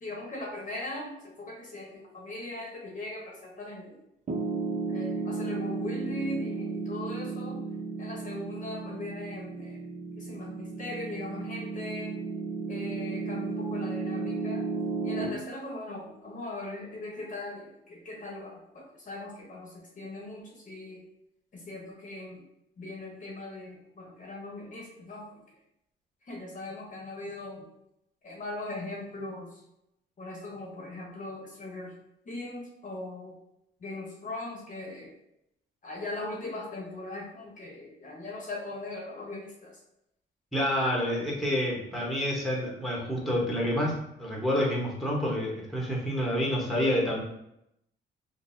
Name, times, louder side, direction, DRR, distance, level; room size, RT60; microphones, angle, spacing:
voice 1, 0.0-3.9 4.9-7.6 8.0-9.8 10.2-12.2 12.7-14.7 15.0-21.0 21.5-22.4 22.8-25.3 26.3-27.7 28.2-29.5 30.2-31.9 32.3-33.4 33.8-35.1 35.8-39.7, left 2 dB, 40° left, -1 dB, 0.8 m, -39 dB
Piano, 4.3-15.3, right 4 dB, 35° right, 0.6 m, -34 dB
voice 2, 40.5-43.9 44.2-47.2, equal, ahead, -3 dB, 0.9 m, -28 dB
3.8 x 2.0 x 2.6 m, 0.81 s
cardioid pair, 90°, 20 cm